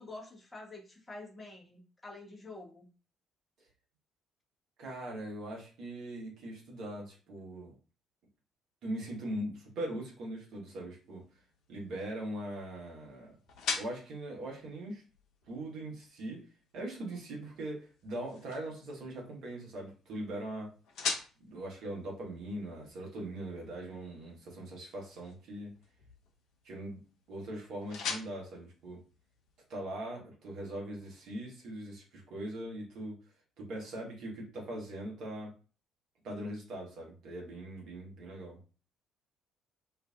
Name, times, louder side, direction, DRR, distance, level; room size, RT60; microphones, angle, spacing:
voice 1, 0.0-2.9, left 2 dB, 15° left, -1 dB, 0.8 m, -47 dB
voice 2, 4.8-7.7 8.8-11.3 11.7-13.4 13.7-15.0 15.5-16.4 16.7-20.7 21.4-25.7 26.6-27.0 27.3-29.0 29.7-33.2 33.6-35.5 36.2-38.6, right 1 dB, 55° right, -2 dB, 1.0 m, -41 dB
sound 1, 10.9-29.8, left 5 dB, 60° left, 0.6 m, -45 dB
2.5 x 2.4 x 2.3 m, 0.36 s
figure-of-eight pair, 45°, 0 cm